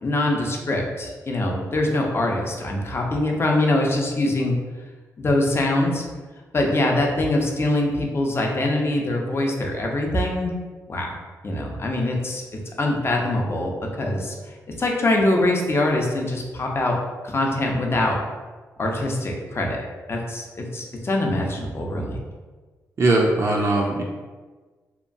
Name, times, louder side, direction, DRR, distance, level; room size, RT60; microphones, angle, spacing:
voice 1, 0.0-4.6 5.2-6.0 6.5-10.5 10.9-11.2 11.4-12.4 12.8-14.3 14.8-16.9 17.2-18.2 18.8-19.8 20.1-22.2, left 1 dB, 40° left, 0 dB, 0.6 m, -23 dB
voice 2, 23.0-24.0, right 2 dB, 50° right, -2 dB, 0.4 m, -20 dB
2.9 x 2.2 x 2.5 m, 1.3 s
cardioid pair, 60°, 7 cm